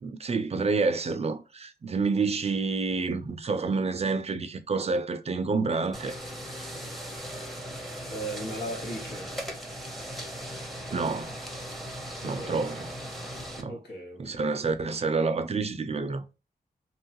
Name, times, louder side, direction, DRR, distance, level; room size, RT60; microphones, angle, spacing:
voice 1, 0.0-6.1 10.9-11.4 12.2-12.9 13.6-13.8 14.2-16.2, right 4 dB, 40° right, 0.4 m, -28 dB
sound 1, 5.9-13.6, equal, ahead, 0.6 m, -38 dB
voice 2, 8.1-9.3 12.2-12.6 13.7-14.4, right 1 dB, 85° left, 1.1 m, -37 dB
3.0 x 2.3 x 2.7 m
wide cardioid pair, 135°, 17 cm